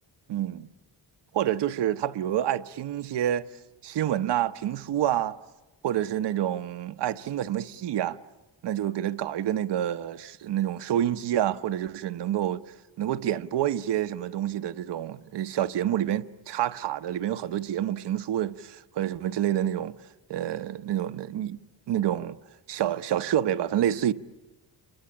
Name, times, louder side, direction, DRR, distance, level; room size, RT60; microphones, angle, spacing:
voice 1, 0.3-0.7 1.3-3.5 3.8-5.4 5.8-8.2 8.6-12.6 13.0-19.9 20.3-21.6 21.9-22.4 22.7-24.1, right 11 dB, 75° right, 0.9 m, -28 dB
28.0 x 23.0 x 9.0 m
wide cardioid pair, 140°, 42 cm